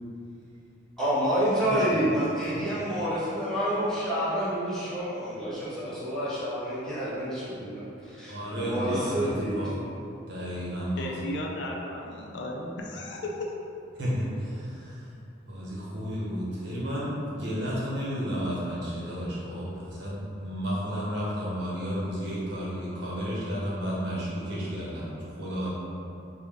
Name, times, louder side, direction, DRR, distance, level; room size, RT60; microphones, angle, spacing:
voice 1, 1.0-9.7, equal, 5° left, -12 dB, 0.9 m, -28 dB
voice 2, 1.6-2.0 2.5-2.7 8.3-9.8 10.3-11.2 12.9-13.0 14.0-15.1 15.4-25.7, equal, 65° right, -7 dB, 0.9 m, -32 dB
voice 3, 11.0-13.4, left 1 dB, 65° left, 0 dB, 0.4 m, -35 dB
4.0 x 2.2 x 3.4 m, 2.7 s
head